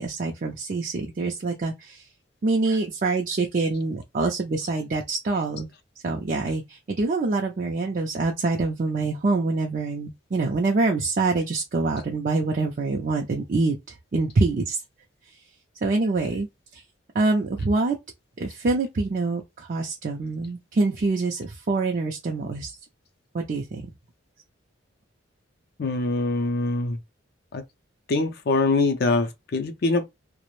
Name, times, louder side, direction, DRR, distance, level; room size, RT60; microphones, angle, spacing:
voice 1, 0.0-2.0 2.4-5.7 6.0-14.8 15.8-16.5 16.7-16.8 17.1-18.0 18.4-22.8 23.3-23.8, right 3 dB, 40° right, 0.4 m, -25 dB
voice 2, 25.8-27.0 27.5-27.6 28.1-30.0, left 3 dB, 50° left, 0.4 m, -23 dB
2.4 x 2.0 x 3.0 m
head